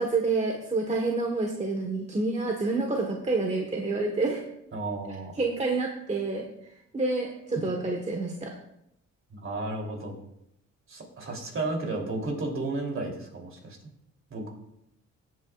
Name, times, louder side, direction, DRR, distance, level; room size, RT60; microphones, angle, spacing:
voice 1, 0.0-4.4 5.3-6.5 6.9-8.6, right 3 dB, 25° right, 1 dB, 1.3 m, -28 dB
voice 2, 4.7-5.3 7.5-7.6 9.3-10.2 10.9-13.8 14.3-14.5, right 2 dB, 45° right, 0 dB, 3.1 m, -33 dB
15.5 x 8.3 x 2.4 m, 0.78 s
cardioid pair, 90°, 30 cm